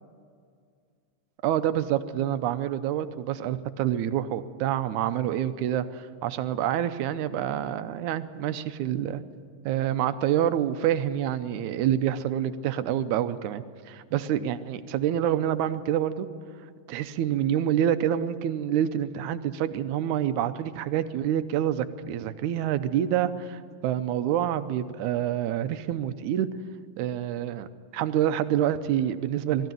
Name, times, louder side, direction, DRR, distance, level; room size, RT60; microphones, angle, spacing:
voice 1, 1.4-9.2 9.7-16.3 16.9-26.5 27.0-27.7 27.9-29.7, right 11 dB, 90° right, 11 dB, 2.2 m, -27 dB
20.0 x 14.0 x 9.2 m, 2.1 s
omnidirectional pair, 3.3 m